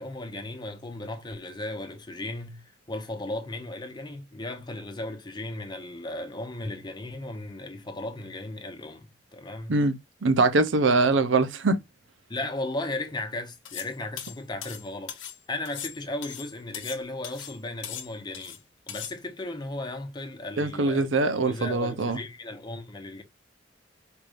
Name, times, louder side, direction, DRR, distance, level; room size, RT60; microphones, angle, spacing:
voice 1, 0.0-9.8 12.3-18.6 18.9-21.1 21.5-23.2, left 2 dB, 25° left, 0.8 m, -36 dB
voice 2, 10.2-11.8 20.6-22.2, right 3 dB, 85° right, 0.6 m, -23 dB
sound 1, 13.7-13.9 14.2-15.4 15.7-17.0 17.2-17.6 17.8-18.6 18.9-19.1, left 10 dB, 85° left, 0.8 m, -39 dB
4.5 x 3.3 x 2.5 m
head